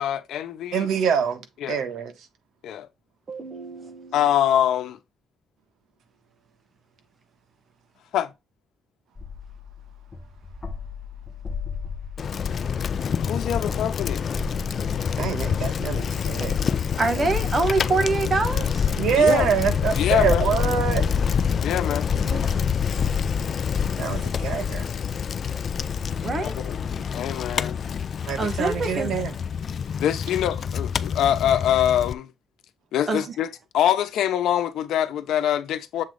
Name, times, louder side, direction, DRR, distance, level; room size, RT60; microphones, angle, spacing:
voice 1, 0.0-0.9 1.6-1.8 2.6-2.9 4.1-5.0 8.1-8.3 13.2-14.2 19.2-19.5 19.9-20.5 21.6-22.1 26.4-26.8 27.1-27.8 30.0-32.3 32.9-36.0, left 10 dB, 85° left, 0.9 m, -24 dB
voice 2, 0.7-1.4 1.7-2.1 15.2-16.6 17.1-17.3 18.9-21.1 24.0-24.9 28.3-29.3, right 7 dB, 75° right, 1.4 m, -25 dB
voice 3, 3.3-4.2 17.0-18.9 22.3-22.4 26.1-26.6 28.4-29.2 33.1-33.2, right 3 dB, 30° right, 1.4 m, -26 dB
sound 1, 9.2-23.5, left 5 dB, 20° left, 0.9 m, -37 dB
Bicycle, 12.2-32.1, left 7 dB, 40° left, 0.4 m, -27 dB
7.3 x 3.9 x 3.4 m
cardioid pair, 160°, 0 cm